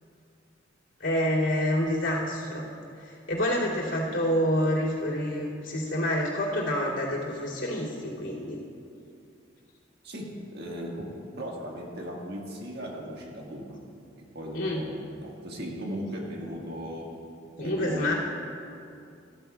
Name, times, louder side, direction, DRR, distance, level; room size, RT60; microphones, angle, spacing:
voice 1, 1.0-2.7 3.0-8.6 14.5-14.8 17.6-18.1, equal, 90° left, -7 dB, 2.7 m, -27 dB
voice 2, 10.0-13.8 14.2-17.2 17.6-18.1, equal, 60° right, -1 dB, 1.7 m, -37 dB
14.5 x 13.5 x 2.3 m, 2.5 s
head